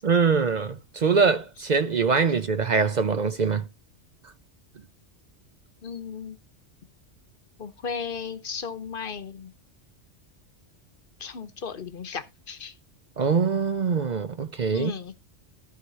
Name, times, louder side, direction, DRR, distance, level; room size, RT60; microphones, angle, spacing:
voice 1, 0.0-3.6 13.2-14.9, right 5 dB, 45° right, 0.6 m, -23 dB
voice 2, 5.8-6.4 7.6-9.5 11.2-12.7 14.7-15.1, left 6 dB, 50° left, 1.1 m, -35 dB
14.0 x 4.8 x 4.0 m
omnidirectional pair, 1.2 m